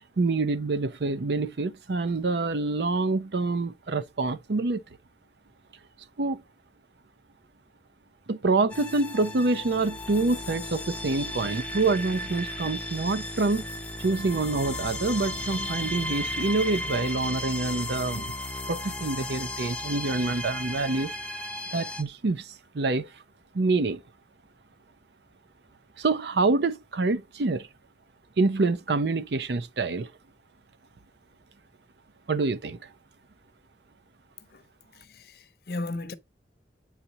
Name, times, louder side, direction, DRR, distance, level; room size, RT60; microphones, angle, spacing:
voice 1, 0.2-4.8 6.2-6.4 8.3-13.6 14.0-18.3 18.7-21.1 21.7-23.1 23.5-24.0 26.0-27.7 28.4-30.1 32.3-32.9, right 3 dB, 75° right, 0.6 m, -26 dB
sound 1, 8.7-22.0, left 1 dB, 10° left, 0.5 m, -35 dB
voice 2, 34.9-36.1, left 2 dB, 60° left, 0.7 m, -36 dB
7.9 x 4.2 x 2.8 m
head